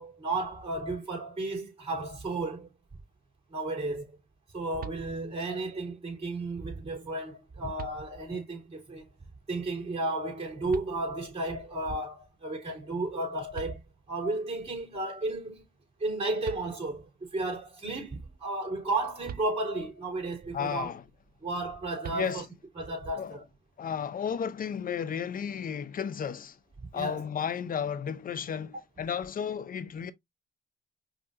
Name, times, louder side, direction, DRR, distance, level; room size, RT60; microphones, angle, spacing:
voice 1, 0.0-2.7 3.5-4.2 4.5-9.1 9.5-13.8 14.1-15.6 16.0-20.9 21.4-22.4 22.8-23.4 26.9-27.3, right 2 dB, 30° right, 3.5 m, -33 dB
sound 1, 4.8-5.6 7.1-7.2 7.8-8.5 10.7-11.5 13.2-13.3 13.5-14.4 16.1-16.2 16.4-17.2 19.3-20.1 22.0-22.8, right 10 dB, 45° right, 0.6 m, -45 dB
voice 2, 20.5-21.0 22.1-22.4 23.2-23.4 23.8-26.6 26.9-30.1, left 7 dB, 45° left, 0.7 m, -33 dB
5.4 x 2.9 x 2.6 m
supercardioid pair, 75°, 20 cm